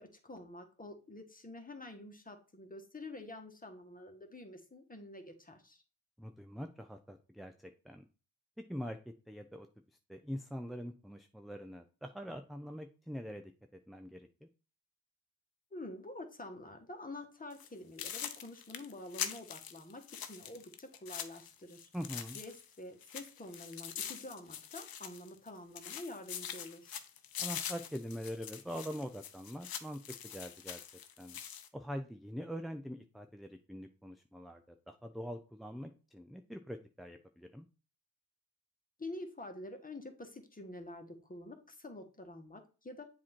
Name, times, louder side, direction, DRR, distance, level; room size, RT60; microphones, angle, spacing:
voice 1, 0.0-5.8 15.7-21.9 22.3-27.0 39.0-43.1, left 2 dB, 20° left, 5 dB, 1.4 m, -48 dB
voice 2, 6.2-8.0 8.7-9.0 9.3-9.7 10.1-14.5 21.9-22.4 27.4-30.0 30.3-30.8 31.2-31.4 31.7-37.7, equal, ahead, 6 dB, 0.5 m, -44 dB
sound 1, 17.5-17.7 18.0-22.7 23.0-25.5 25.8-31.7, left 8 dB, 65° left, 0.8 m, -44 dB
7.3 x 2.9 x 4.4 m, 0.35 s
cardioid pair, 50°, 38 cm